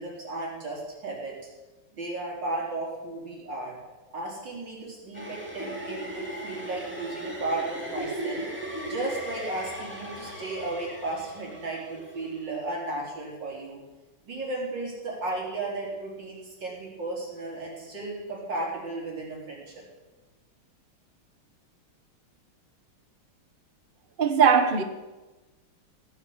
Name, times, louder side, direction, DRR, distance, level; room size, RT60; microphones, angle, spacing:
voice 1, 0.0-1.5 1.9-3.8 4.1-8.4 8.9-13.8 14.2-19.8, right 2 dB, 55° right, 4.9 m, -34 dB
sound 1, 5.1-12.4, right 1 dB, 5° right, 2.8 m, -37 dB
voice 2, 24.2-24.8, right 6 dB, 35° right, 0.9 m, -19 dB
17.0 x 9.1 x 8.1 m
omnidirectional pair, 2.3 m